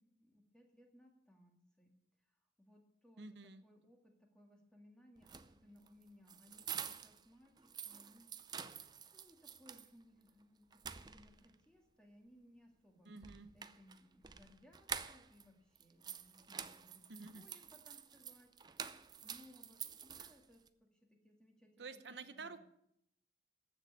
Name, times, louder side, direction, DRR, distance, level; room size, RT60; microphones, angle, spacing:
voice 1, 0.0-1.9 2.2-2.3 2.6-8.3 9.1-13.1 13.5-17.0 17.3-18.8 19.2-22.6, equal, 5° left, 1 dB, 2.1 m, -64 dB
voice 2, 3.2-3.6 13.0-13.5 17.1-17.5 21.8-22.6, right 4 dB, 90° right, 10 dB, 0.9 m, -50 dB
sound 1, 5.2-7.2 7.6-9.9 10.3-10.4 10.7-11.5 13.2-15.4 15.7-20.7, right 7 dB, 25° right, 0.5 m, -48 dB
14.5 x 6.5 x 8.3 m, 0.75 s
head